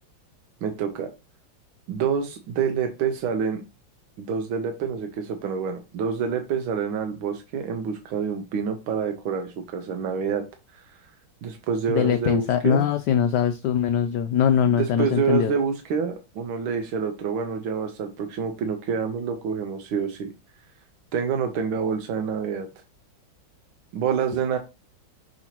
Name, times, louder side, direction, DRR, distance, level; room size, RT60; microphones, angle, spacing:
voice 1, 0.6-1.1 1.9-3.6 4.2-10.5 10.7-10.8 11.4-12.8 14.7-20.3 21.1-22.7 23.9-24.6, right 6 dB, 90° right, 5 dB, 1.8 m, -27 dB
voice 2, 11.9-15.5, left 8 dB, 70° left, 9 dB, 1.1 m, -22 dB
6.3 x 6.0 x 2.9 m, 0.26 s
omnidirectional pair, 2.2 m